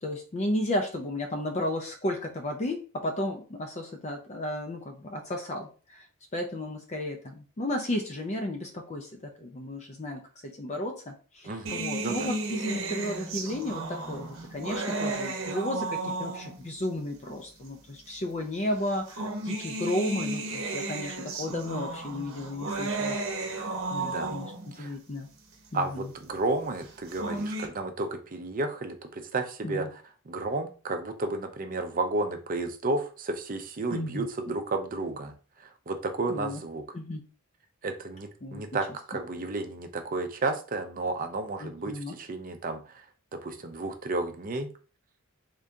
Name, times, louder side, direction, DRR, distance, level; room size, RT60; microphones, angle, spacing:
voice 1, 0.0-6.1 6.3-10.2 10.6-23.2 23.6-25.3 25.7-26.1 29.6-29.9 33.9-34.3 36.3-36.6 36.9-37.2 38.4-38.6 41.6-42.1, left 1 dB, 30° left, 3 dB, 0.5 m, -33 dB
voice 2, 11.4-12.3 24.0-24.4 24.8-25.0 25.7-30.0 30.3-36.8 37.8-43.1 43.3-44.7, right 2 dB, 40° right, 6 dB, 0.5 m, -32 dB
sound 1, 11.7-16.7 17.7-17.8 18.9-24.8 26.9-27.7, right 2 dB, 60° right, 0.9 m, -34 dB
3.7 x 2.7 x 3.4 m, 0.37 s
head